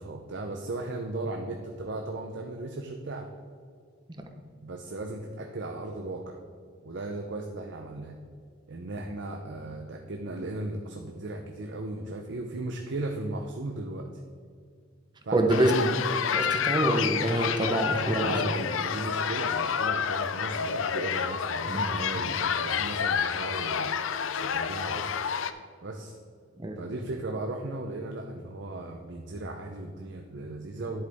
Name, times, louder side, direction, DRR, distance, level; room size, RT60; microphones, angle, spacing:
voice 1, 0.0-3.3 4.6-6.4 6.8-8.1 8.7-14.1 15.2-16.0 18.0-23.9 24.4-25.1 25.8-26.2 26.8-31.0, right 2 dB, 65° right, 3 dB, 0.7 m, -36 dB
voice 2, 15.3-15.8 16.3-18.3 21.6-22.0 26.6-26.8, right 1 dB, 25° right, 4 dB, 0.9 m, -26 dB
sound 1, 15.5-25.5, left 7 dB, 80° left, 0.5 m, -29 dB
10.5 x 8.0 x 3.5 m, 2.1 s
head